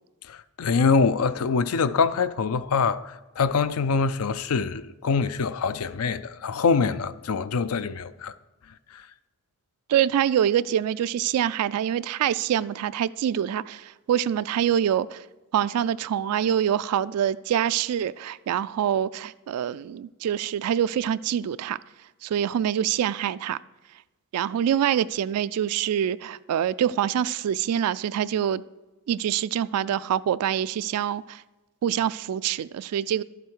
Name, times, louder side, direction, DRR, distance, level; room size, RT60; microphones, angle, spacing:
voice 1, 0.3-8.3 8.9-9.0, left 5 dB, 80° left, 0.5 m, -24 dB
voice 2, 9.9-15.2 15.5-21.8 22.2-23.6 24.3-28.6 29.1-31.4 31.8-33.2, right 9 dB, 85° right, 0.3 m, -25 dB
12.0 x 8.1 x 4.5 m
head